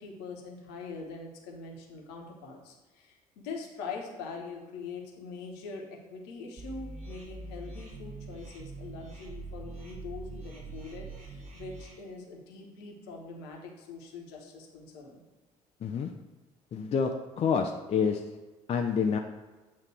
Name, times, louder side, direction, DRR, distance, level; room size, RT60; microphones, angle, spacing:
voice 1, 0.0-15.2, left 4 dB, 60° left, 0 dB, 1.2 m, -43 dB
sound 1, 6.6-11.9, right 3 dB, 35° right, 2.1 m, -43 dB
voice 2, 15.8-16.1 16.7-17.1 17.4-18.2 18.7-19.2, left 6 dB, 35° left, 3 dB, 0.5 m, -27 dB
8.5 x 2.9 x 4.5 m, 1.2 s
figure-of-eight pair, 55°, 19 cm